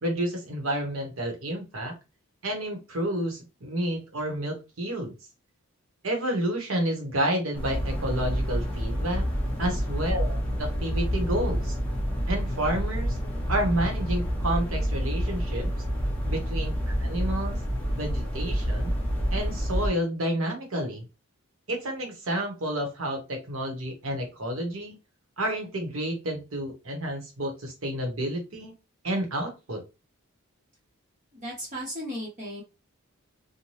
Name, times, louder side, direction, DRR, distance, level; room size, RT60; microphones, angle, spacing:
voice 1, 0.0-2.0 2.4-5.1 6.0-9.2 9.6-11.8 12.3-13.2 13.5-15.7 16.2-17.6 17.9-18.9 19.3-21.0 21.7-24.9 25.4-28.7 29.0-29.8, right 1 dB, 70° right, 3 dB, 1.0 m, -30 dB
sound 1, 7.5-19.9, equal, 5° left, 0.6 m, -28 dB
voice 2, 31.3-32.6, equal, 35° right, -4 dB, 0.8 m, -35 dB
2.7 x 2.1 x 3.1 m, 0.28 s
head